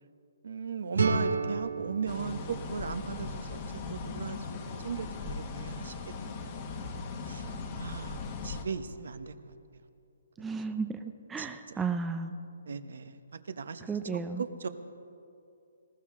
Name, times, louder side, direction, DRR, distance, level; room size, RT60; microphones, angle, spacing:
voice 1, 0.4-5.9 6.2-6.9 7.2-9.5 11.4-11.8 12.7-14.7, right 6 dB, 70° right, 11 dB, 0.9 m, -38 dB
sound 1, 0.9-3.8, right 3 dB, 90° right, 1.4 m, -33 dB
sound 2, 2.1-8.6, left 4 dB, 30° left, 1.3 m, -39 dB
voice 2, 10.4-11.0 11.3-12.3 13.9-14.4, right 5 dB, 10° right, 7 dB, 0.5 m, -33 dB
20.0 x 17.0 x 3.7 m, 2.6 s
hypercardioid pair, 160°, 0 cm